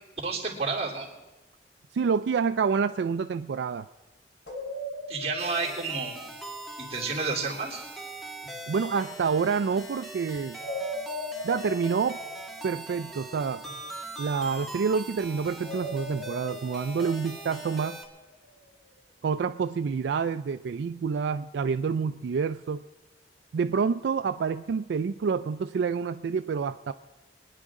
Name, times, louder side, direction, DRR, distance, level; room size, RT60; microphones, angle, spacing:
voice 1, 0.2-1.1 5.1-6.3 6.8-7.8, right 4 dB, 35° right, -2 dB, 3.1 m, -30 dB
voice 2, 1.9-3.9 8.7-10.6 11.4-12.2 12.6-13.6 14.2-18.0 19.2-22.8 23.5-26.9, right 5 dB, 80° right, 10 dB, 0.3 m, -28 dB
sound 1, 4.5-7.4 10.6-13.9 15.6-18.4, left 1 dB, 75° left, 3.3 m, -39 dB
sound 2, 5.4-18.1, right 2 dB, ahead, 1.4 m, -42 dB
25.0 x 10.0 x 3.7 m, 1.1 s
head